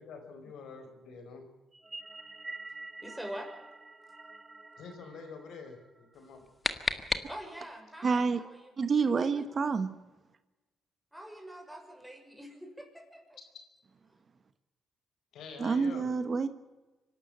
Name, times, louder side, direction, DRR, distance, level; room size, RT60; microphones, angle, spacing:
voice 1, 0.0-1.5 4.8-6.5 15.3-16.1, left 5 dB, 75° left, 5 dB, 4.8 m, -46 dB
sound 1, 1.7-6.3, right 2 dB, 20° right, 1.4 m, -47 dB
voice 2, 3.0-3.5 7.2-8.7 9.1-9.5 11.1-13.4, equal, 5° right, 2 dB, 6.2 m, -45 dB
sound 2, 6.1-7.8, left 3 dB, 25° left, 1.8 m, -35 dB
voice 3, 8.0-8.4 8.8-9.9 15.6-16.5, right 5 dB, 40° right, 11 dB, 1.4 m, -28 dB
25.5 x 12.0 x 8.9 m, 1.1 s
cardioid pair, 90°, 0 cm